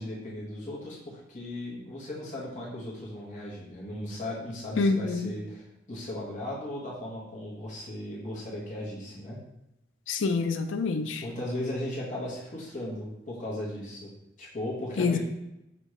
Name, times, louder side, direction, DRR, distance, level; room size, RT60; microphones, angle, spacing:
voice 1, 0.0-9.4 11.2-14.1 14.4-15.2, left 1 dB, 40° left, -5 dB, 1.3 m, -37 dB
voice 2, 4.8-5.3 10.1-11.2 15.0-15.2, left 4 dB, 80° left, 7 dB, 0.4 m, -26 dB
5.3 x 3.1 x 3.1 m, 0.87 s
head